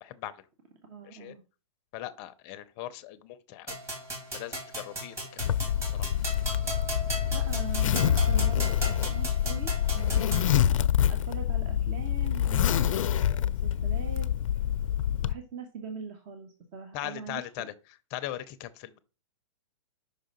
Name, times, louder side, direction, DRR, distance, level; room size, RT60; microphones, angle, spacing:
voice 1, 0.0-0.4 1.0-1.3 1.9-3.8 4.3-6.1 16.9-17.7 18.1-19.0, left 14 dB, 30° left, 0.6 m, -40 dB
voice 2, 0.9-1.4 2.5-2.6 7.3-10.8 11.1-14.3 15.2-17.7, right 4 dB, 35° right, 1.0 m, -42 dB
sound 1, 3.7-10.5, right 1 dB, 15° right, 2.3 m, -37 dB
Zipper (clothing), 5.4-15.3, left 10 dB, 75° left, 0.4 m, -26 dB
5.4 x 3.8 x 5.2 m
hypercardioid pair, 145°, 17 cm